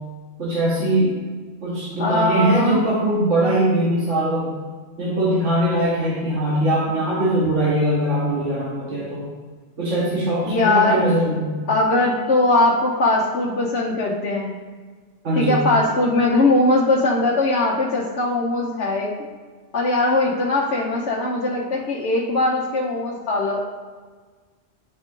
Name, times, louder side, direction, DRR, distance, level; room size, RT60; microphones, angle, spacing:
voice 1, 0.4-1.2 1.6-4.5 5.0-9.3 9.8-11.5 15.2-15.6, right 1 dB, 80° right, -7 dB, 1.7 m, -21 dB
voice 2, 2.0-2.8 10.5-11.1 11.7-14.5 15.4-19.1 19.7-23.6, left 2 dB, 65° left, -4 dB, 1.1 m, -20 dB
10.0 x 3.8 x 3.7 m, 1.4 s
omnidirectional pair, 1.2 m